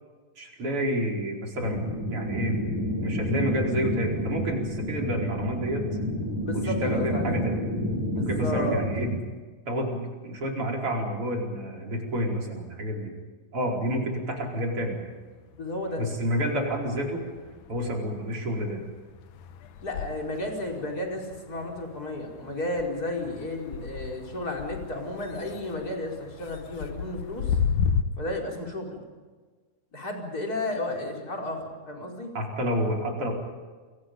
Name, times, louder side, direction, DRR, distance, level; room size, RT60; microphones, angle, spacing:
voice 1, 0.4-1.8 2.1-2.6 3.0-5.8 6.5-7.6 8.2-9.1 9.7-13.1 13.5-15.0 16.0-17.2 17.7-18.8 32.3-33.3, equal, 40° right, -1 dB, 5.5 m, -29 dB
sound 1, 1.6-9.2, left 1 dB, 70° right, 8.4 m, -29 dB
voice 2, 6.4-7.4 8.1-8.8 15.5-16.1 19.8-27.6 28.2-29.1 29.9-32.3, left 1 dB, 25° left, 0 dB, 5.2 m, -33 dB
sound 2, 14.8-16.0 16.3-28.0, left 7 dB, 80° left, 2.7 m, -34 dB
29.0 x 24.0 x 5.4 m, 1.4 s
omnidirectional pair, 3.7 m